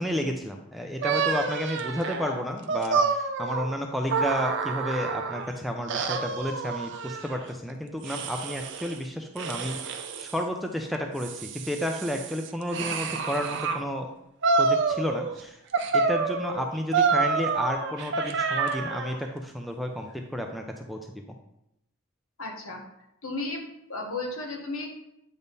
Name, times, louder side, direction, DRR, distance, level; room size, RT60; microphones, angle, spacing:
voice 1, 0.0-14.1 14.6-15.6 15.9-21.2, equal, ahead, 3 dB, 0.4 m, -31 dB
sound 1, 1.0-5.5 5.9-7.4 8.0-9.0 9.4-10.4 10.9-13.8 14.4-15.4 15.7-19.2, right 4 dB, 55° right, 0.5 m, -28 dB
voice 2, 22.4-22.8 23.2-24.9, left 2 dB, 70° left, 1 dB, 1.3 m, -34 dB
8.3 x 3.6 x 4.0 m, 0.83 s
head